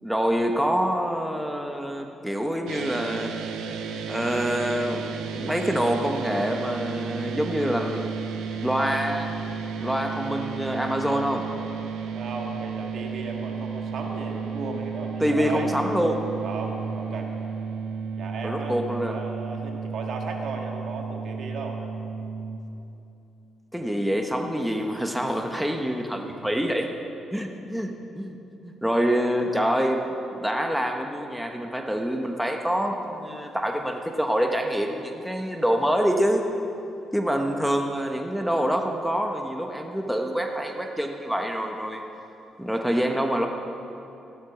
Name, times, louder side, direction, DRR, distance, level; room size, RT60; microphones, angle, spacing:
voice 1, 0.0-3.3 4.1-8.1 8.6-9.3 9.8-11.5 15.2-16.3 18.4-19.2 23.7-26.9 27.3-28.4 28.6-36.4 37.1-42.1 42.6-43.5, equal, ahead, 3 dB, 1.1 m, -26 dB
sound 1, 2.7-22.6, right 6 dB, 90° right, 1.0 m, -33 dB
voice 2, 12.1-15.7 16.4-17.3 18.2-21.8 26.2-26.3, right 3 dB, 65° right, 1 dB, 2.0 m, -35 dB
15.0 x 12.0 x 5.9 m, 2.8 s
cardioid pair, 90°, 0 cm